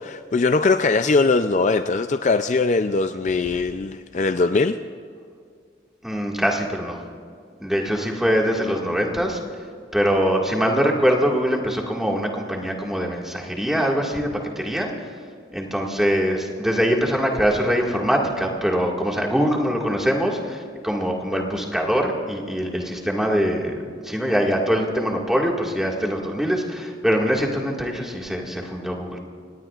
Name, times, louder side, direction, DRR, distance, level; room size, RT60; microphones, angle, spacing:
voice 1, 0.0-4.8, left 3 dB, 40° left, 9 dB, 0.4 m, -21 dB
voice 2, 6.0-7.0 7.6-9.4 9.9-14.3 14.6-14.9 15.5-29.2, equal, ahead, -1 dB, 1.9 m, -23 dB
29.0 x 18.0 x 2.4 m, 2.3 s
head